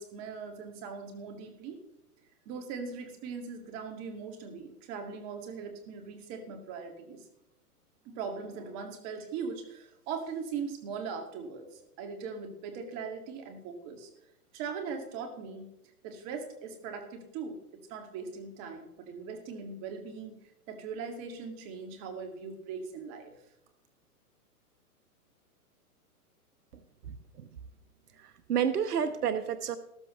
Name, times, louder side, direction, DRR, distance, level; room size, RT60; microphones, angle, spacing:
voice 1, 0.0-1.8 2.5-7.2 8.1-14.1 14.5-15.7 16.0-20.4 20.7-23.3, right 5 dB, 35° right, 5 dB, 2.4 m, -40 dB
voice 2, 26.7-27.5 28.2-29.8, right 8 dB, 85° right, 13 dB, 0.9 m, -31 dB
13.5 x 13.5 x 3.2 m, 0.81 s
hypercardioid pair, 130°, 46 cm